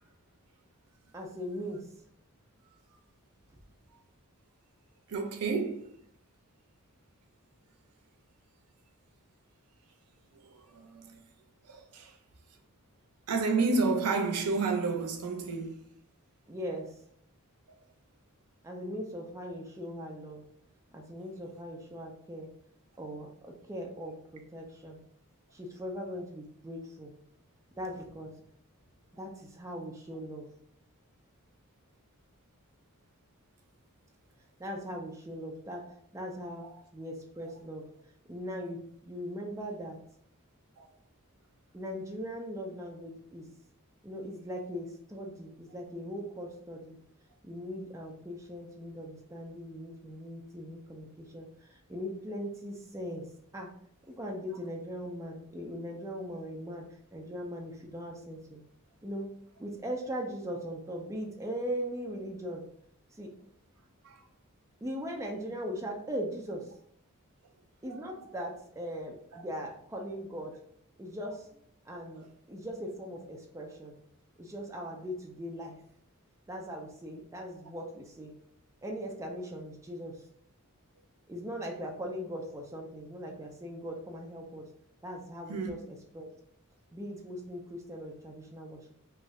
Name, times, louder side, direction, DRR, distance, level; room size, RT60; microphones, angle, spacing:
voice 1, 1.1-1.9 16.5-17.0 18.6-20.4 20.9-22.5 23.0-25.0 25.5-27.1 27.8-28.4 29.2-30.5 34.6-35.8 36.1-36.7 36.9-37.9 38.3-40.0 41.7-43.5 44.0-47.0 47.4-53.3 53.5-53.7 54.1-58.6 59.0-59.3 59.6-62.6 63.1-63.3 64.8-66.7 67.8-70.6 71.0-71.5 71.9-74.0 74.4-75.8 76.5-78.3 78.8-80.2 81.3-84.7 85.0-86.3 86.9-89.0, equal, 15° right, 0.4 m, -40 dB
voice 2, 5.1-5.9 10.4-11.1 11.7-12.1 13.3-15.8 36.6-36.7 40.8-40.9 64.0-64.2 67.9-68.0 69.3-69.4 85.5-85.7, right 4 dB, 85° right, 0.5 m, -30 dB
2.6 x 2.4 x 3.1 m
head